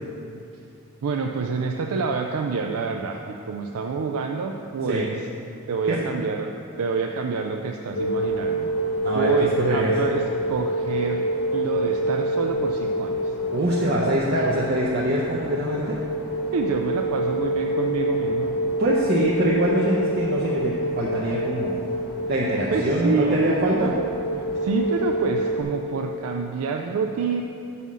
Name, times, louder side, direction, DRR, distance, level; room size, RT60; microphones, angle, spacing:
voice 1, 1.0-5.1 5.7-6.5 6.8-8.7 9.1-10.2 10.5-11.3 11.5-13.2 16.5-18.6 22.7-23.9 24.6-27.4, right 4 dB, 80° right, 2 dB, 0.4 m, -27 dB
sound 1, 8.0-25.6, equal, 60° left, 1.2 m, -27 dB
voice 2, 9.0-9.9 13.5-16.0 18.8-21.8 22.3-23.9, right 1 dB, 45° right, -5 dB, 0.6 m, -24 dB
5.6 x 5.5 x 6.2 m, 2.7 s
head